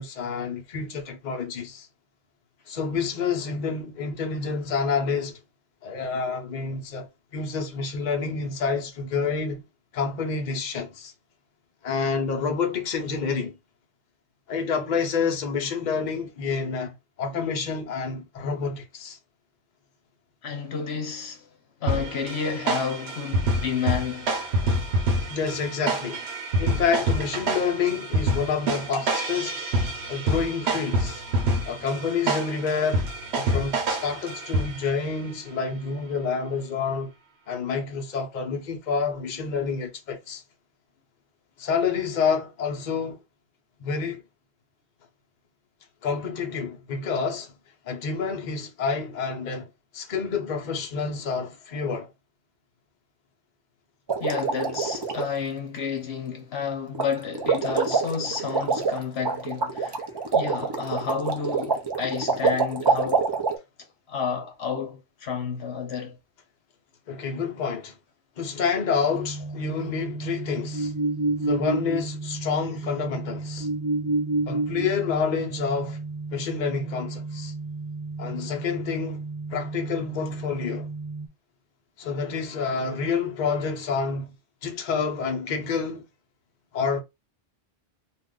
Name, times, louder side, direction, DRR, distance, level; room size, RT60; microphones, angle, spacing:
voice 1, 0.0-1.9 2.7-5.4 5.8-9.6 9.9-11.1 11.8-13.6 14.5-19.2 25.3-26.2 26.6-29.6 30.1-31.2 31.7-33.1 33.3-37.1 37.5-40.4 41.6-43.2 43.8-44.2 46.0-47.5 47.9-49.7 49.9-52.1 67.1-68.0 68.4-70.9 71.4-73.7 74.5-76.0 76.3-77.5 78.2-79.2 79.5-80.9 82.0-84.3 84.6-86.0 86.7-87.0, left 5 dB, 50° left, 0.8 m, -28 dB
voice 2, 20.4-21.5 21.8-24.4 54.2-63.3 64.1-66.2, left 6 dB, 75° left, 1.0 m, -31 dB
sound 1, 21.9-35.0, right 1 dB, 80° right, 1.1 m, -27 dB
sound 2, 54.1-55.3 56.9-57.1 57.3-63.6, right 4 dB, 35° right, 0.4 m, -26 dB
sound 3, 69.1-81.3, right 2 dB, 15° right, 0.9 m, -31 dB
2.5 x 2.4 x 3.6 m
omnidirectional pair, 1.1 m